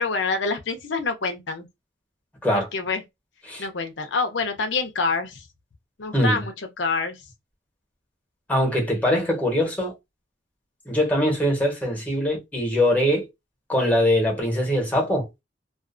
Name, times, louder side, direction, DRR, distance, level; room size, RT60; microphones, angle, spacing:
voice 1, 0.0-1.7 2.5-3.0 3.6-5.4 6.0-7.2, left 4 dB, 85° left, 0.7 m, -26 dB
voice 2, 8.5-9.9 10.9-13.3 13.7-15.3, left 1 dB, 10° left, 1.1 m, -22 dB
2.5 x 2.4 x 2.5 m
head